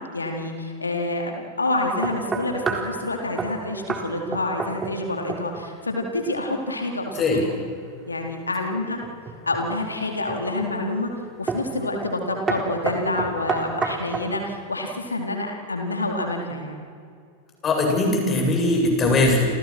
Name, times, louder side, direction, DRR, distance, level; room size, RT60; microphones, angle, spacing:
voice 1, 0.0-7.5 8.1-9.0 9.4-11.1 11.4-16.8, left 2 dB, 80° left, 2 dB, 4.3 m, -27 dB
sound 1, 2.0-2.9 3.4-3.6 3.9-4.1 4.3-5.0 5.3-5.7 9.0-9.7 10.3-10.7 11.5-11.7 12.0-12.2 12.5-14.3, right 4 dB, 15° right, 4.0 m, -28 dB
voice 2, 17.6-19.5, left 2 dB, 25° left, 2 dB, 7.9 m, -20 dB
29.5 x 29.5 x 6.3 m, 2.3 s
figure-of-eight pair, 90°, 0 cm